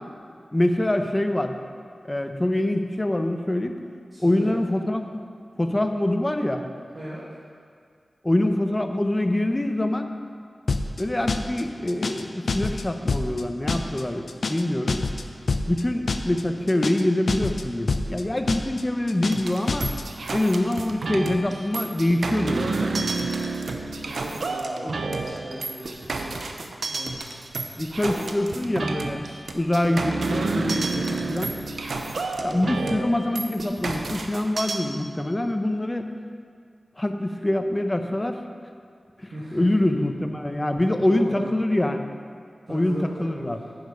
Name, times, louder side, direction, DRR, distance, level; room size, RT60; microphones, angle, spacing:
voice 1, 0.5-1.6 2.0-3.8 4.2-5.1 5.6-6.6 8.2-10.1 11.0-15.0 15.7-19.9 20.3-23.1 24.8-24.9 27.8-29.3 29.5-31.5 32.4-36.1 37.0-38.4 39.2-42.0 42.7-43.6, left 1 dB, 20° left, 6 dB, 0.7 m, -25 dB
voice 2, 4.1-4.5 6.9-7.2 23.7-26.4 26.9-27.2 28.1-28.3 29.9-30.3 31.6-32.0 39.3-40.0 41.1-41.5 42.7-43.5, equal, 70° right, -10 dB, 2.0 m, -39 dB
sound 1, 10.7-11.0 11.3-11.6 11.9-12.2 12.5-12.8 13.1-13.4 13.7-14.0 14.3-14.6 14.9-15.2 15.5-15.8 16.1-16.4 16.7-17.0 17.3-17.6 17.9-18.2 18.5-18.8 19.1-19.4 19.7-20.0, left 3 dB, 75° left, 0.5 m, -26 dB
sound 2, 19.3-34.8, right 3 dB, 85° right, 0.6 m, -30 dB
9.7 x 6.5 x 5.4 m, 2.1 s
wide cardioid pair, 75°, 0 cm